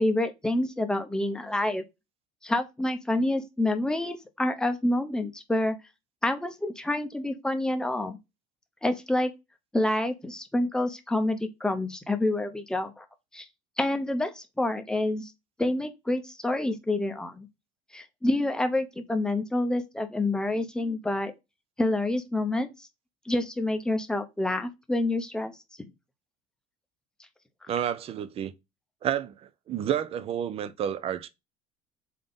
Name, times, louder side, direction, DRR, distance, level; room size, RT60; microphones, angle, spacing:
voice 1, 0.0-1.8 2.4-5.7 6.2-8.2 8.8-9.3 9.7-13.1 13.3-13.5 13.8-15.3 15.6-17.5 17.9-21.3 21.8-22.9 23.3-25.5 27.6-27.7, left 1 dB, 5° left, 0.7 m, -28 dB
voice 2, 27.7-28.5 29.0-29.3 29.7-31.3, right 9 dB, 40° right, 0.5 m, -30 dB
3.7 x 3.7 x 3.8 m
cardioid pair, 115°, 15 cm